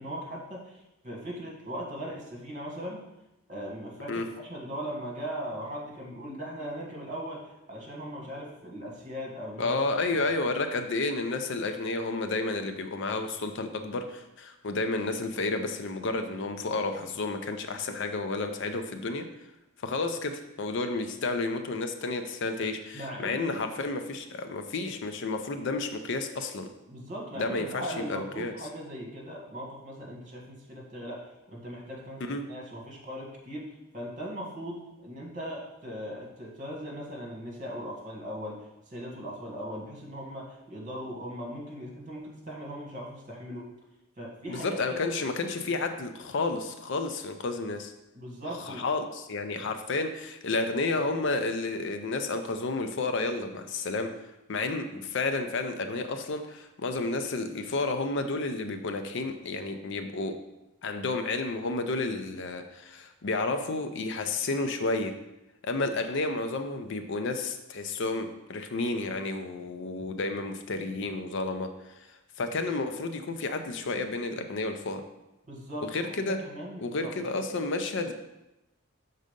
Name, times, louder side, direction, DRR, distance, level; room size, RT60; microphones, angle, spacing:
voice 1, 0.0-3.0 3.5-9.8 10.1-10.4 22.9-23.6 26.9-31.2 31.5-43.7 44.2-45.1 48.1-48.9 75.5-77.3, equal, 35° right, -2 dB, 1.6 m, -39 dB
voice 2, 9.6-19.3 19.8-26.7 27.4-28.5 32.2-32.4 44.5-47.9 48.7-54.1 54.5-60.4 60.8-65.1 65.6-75.0 75.9-76.4 76.8-78.1, left 3 dB, 60° left, 7 dB, 0.5 m, -31 dB
6.3 x 4.0 x 5.1 m, 0.94 s
head